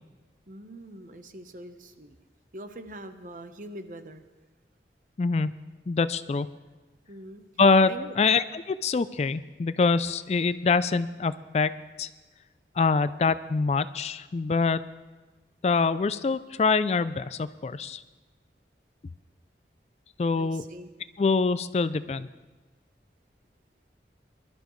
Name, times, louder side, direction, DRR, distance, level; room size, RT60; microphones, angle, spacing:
voice 1, 0.5-2.2 2.5-4.2 7.1-7.4 7.9-8.1 20.4-20.9, right 1 dB, 45° right, 8 dB, 0.9 m, -43 dB
voice 2, 5.2-5.5 5.9-6.5 7.6-12.1 12.8-14.8 15.6-18.0 20.2-20.6 21.2-22.3, left 4 dB, 35° left, 14 dB, 0.3 m, -25 dB
22.5 x 12.5 x 3.2 m, 1.2 s
head